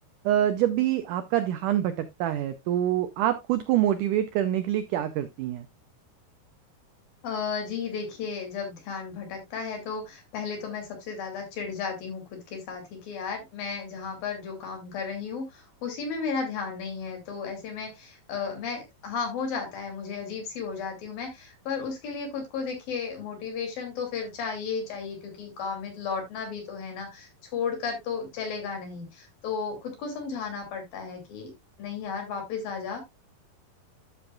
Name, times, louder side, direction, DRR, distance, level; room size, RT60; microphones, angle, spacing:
voice 1, 0.3-5.7, right 12 dB, 85° right, 1.8 m, -26 dB
voice 2, 7.2-31.5 31.8-33.0, left 5 dB, 65° left, 4.6 m, -34 dB
12.5 x 7.1 x 2.4 m
omnidirectional pair, 4.6 m